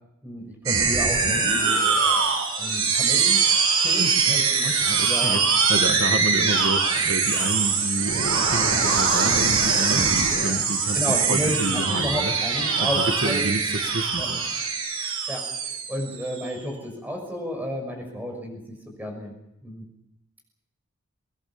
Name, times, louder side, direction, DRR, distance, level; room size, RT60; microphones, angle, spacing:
voice 1, 0.2-1.8 2.6-3.4 3.8-4.7 5.0-5.4 9.9-10.1 10.9-13.4 14.2-14.3 15.3-15.4 15.9-18.6 19.0-19.3 19.6-19.8, equal, 10° right, 2 dB, 6.1 m, -31 dB
sound 1, 0.7-16.5, right 5 dB, 90° right, 6.3 m, -22 dB
voice 2, 4.0-12.3 12.8-13.6 13.9-14.4, right 1 dB, 60° right, 6 dB, 1.7 m, -29 dB
24.5 x 20.0 x 7.2 m, 0.84 s
head